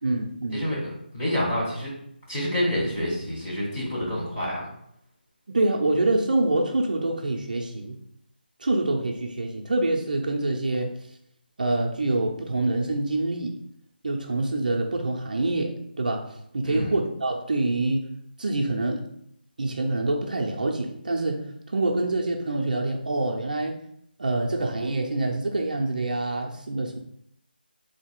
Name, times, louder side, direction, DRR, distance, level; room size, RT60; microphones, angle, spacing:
voice 1, 0.0-0.7 5.5-8.0 8.6-11.0 11.6-13.6 14.0-18.1 18.4-19.0 19.6-23.8 24.2-27.0, right 2 dB, 50° right, 0 dB, 0.6 m, -26 dB
voice 2, 0.5-1.9 2.3-4.7 16.6-16.9, equal, 10° left, -9 dB, 1.2 m, -28 dB
4.0 x 2.8 x 4.4 m, 0.71 s
figure-of-eight pair, 175°, 6 cm